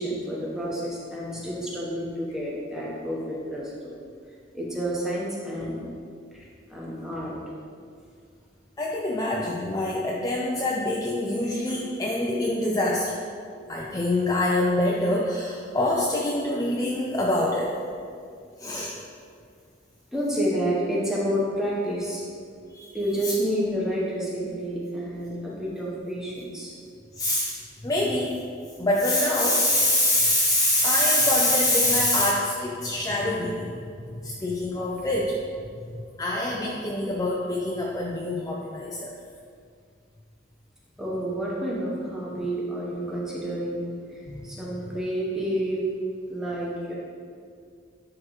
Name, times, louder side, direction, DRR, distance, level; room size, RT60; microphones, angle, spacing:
voice 1, 0.0-3.9 4.5-5.8 6.3-6.4 6.7-7.4 20.1-22.2 22.9-26.7 41.0-43.8 44.4-45.8 46.3-46.9, equal, 5° right, -5 dB, 1.1 m, -29 dB
voice 2, 8.8-13.1 13.7-17.7 18.6-18.9 22.7-23.0 27.1-27.5 27.8-28.4 28.8-33.7 34.1-35.4 35.9-39.1 44.3-44.5 44.9-45.0, left 1 dB, 20° left, -3 dB, 0.4 m, -25 dB
10.5 x 3.8 x 3.1 m, 2.2 s
head